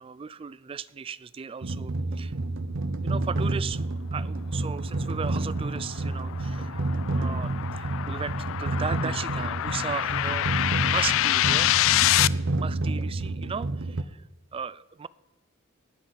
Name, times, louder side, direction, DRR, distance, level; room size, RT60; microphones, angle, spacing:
voice 1, 0.0-2.3 3.0-6.8 7.2-11.7 12.6-14.2 14.5-15.1, right 6 dB, 25° right, 18 dB, 0.3 m, -36 dB
sound 1, 1.6-14.0, right 2 dB, 65° right, 0.7 m, -29 dB
sound 2, 5.4-12.3, left 14 dB, 65° left, 0.3 m, -26 dB
19.5 x 11.5 x 4.1 m, 1.1 s
head